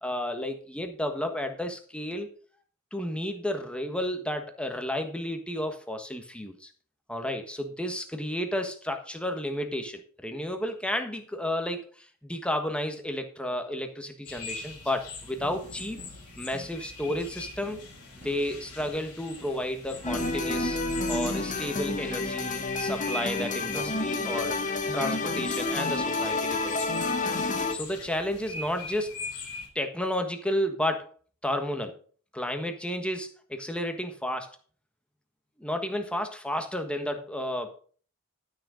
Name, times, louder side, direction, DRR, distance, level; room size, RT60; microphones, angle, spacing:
voice 1, 0.0-2.3 2.9-6.7 7.1-16.0 16.4-17.8 18.1-20.8 21.1-24.6 24.9-26.8 27.7-29.1 29.7-31.1 31.4-32.0 32.3-34.5 35.6-37.8, left 1 dB, 5° left, 5 dB, 1.4 m, -32 dB
sound 1, 14.2-29.7, left 3 dB, 85° left, 3.3 m, -43 dB
sound 2, 15.3-21.7, right 2 dB, 40° right, 2.2 m, -51 dB
sound 3, 20.0-27.7, left 3 dB, 35° left, 1.1 m, -29 dB
12.0 x 6.5 x 5.0 m, 0.43 s
head